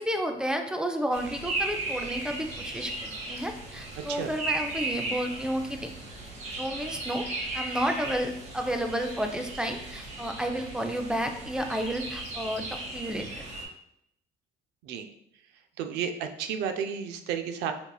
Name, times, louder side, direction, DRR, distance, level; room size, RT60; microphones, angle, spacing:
voice 1, 0.0-5.9 6.6-7.3 7.5-13.3, equal, 5° right, 5 dB, 0.4 m, -31 dB
sound 1, 1.1-13.6, right 2 dB, 40° right, 1.0 m, -36 dB
voice 2, 15.8-17.7, right 7 dB, 85° right, 7 dB, 0.4 m, -32 dB
5.3 x 2.4 x 2.3 m, 0.75 s
cardioid pair, 110°, 17 cm